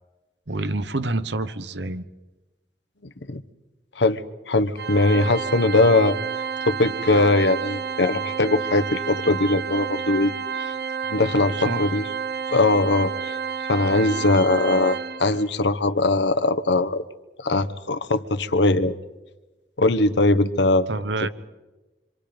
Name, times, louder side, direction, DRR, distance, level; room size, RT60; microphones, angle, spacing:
voice 1, 0.5-2.0 11.6-11.8 20.9-21.3, right 2 dB, 85° right, 12 dB, 1.1 m, -27 dB
voice 2, 3.0-3.4 4.0-4.2 4.5-6.2 6.7-10.3 10.6-10.7 11.1-12.1 12.5-13.4 13.7-17.0 17.4-18.9 19.8-20.9, left 2 dB, 85° left, 11 dB, 1.1 m, -20 dB
Organ, 4.8-15.5, right 6 dB, 60° right, 0.8 m, -30 dB
27.0 x 26.0 x 5.2 m, 1.1 s
head